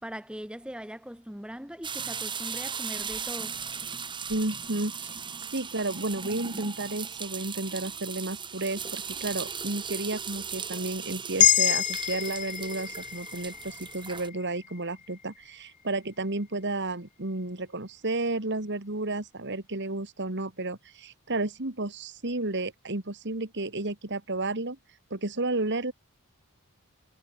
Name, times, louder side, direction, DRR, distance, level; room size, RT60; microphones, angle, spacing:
voice 1, 0.0-3.6, equal, 5° right, 1.7 m, -40 dB
sound 1, 1.8-14.3, right 6 dB, 20° right, 2.5 m, -37 dB
voice 2, 4.3-5.2 5.5-24.8 25.1-25.9, right 2 dB, 50° right, 2.3 m, -32 dB
sound 2, 11.4-15.7, left 10 dB, 35° left, 2.0 m, -27 dB
head